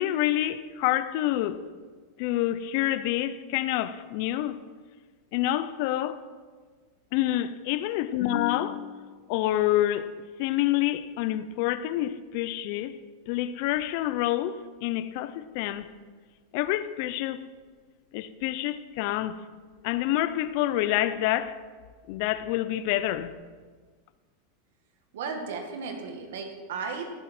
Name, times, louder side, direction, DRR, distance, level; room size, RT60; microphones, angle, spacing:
voice 1, 0.0-1.6 2.2-4.6 5.3-6.2 7.1-10.1 10.4-13.0 13.3-15.9 16.5-17.5 18.1-19.4 19.8-21.6 22.1-23.3, left 14 dB, 55° left, 0.7 m, -27 dB
voice 2, 25.1-27.1, right 5 dB, 80° right, 1.8 m, -35 dB
18.0 x 8.9 x 4.4 m
supercardioid pair, 140°, 0 cm